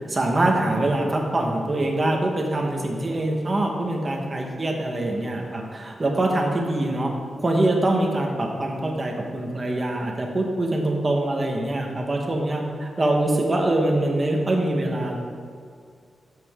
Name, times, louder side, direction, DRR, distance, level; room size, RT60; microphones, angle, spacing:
voice 1, 0.1-7.1 7.4-15.2, right 1 dB, 25° right, 1 dB, 1.3 m, -24 dB
12.0 x 7.7 x 3.6 m, 2.2 s
wide cardioid pair, 150°, 0 cm